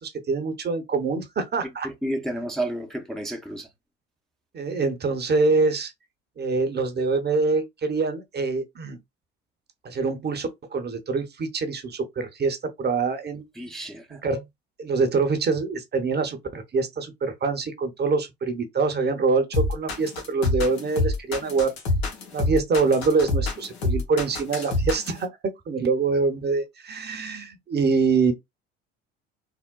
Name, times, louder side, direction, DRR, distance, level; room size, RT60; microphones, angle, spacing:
voice 1, 0.0-1.9 4.5-5.9 6.4-9.0 9.8-13.5 14.1-14.4 14.8-21.7 22.3-28.3, right 4 dB, 35° right, 0.8 m, -25 dB
voice 2, 1.8-3.7 13.6-14.2, right 1 dB, ahead, 0.6 m, -31 dB
sound 1, 19.5-25.2, left 2 dB, 85° left, 1.0 m, -26 dB
3.6 x 2.1 x 2.2 m
hypercardioid pair, 65°, 31 cm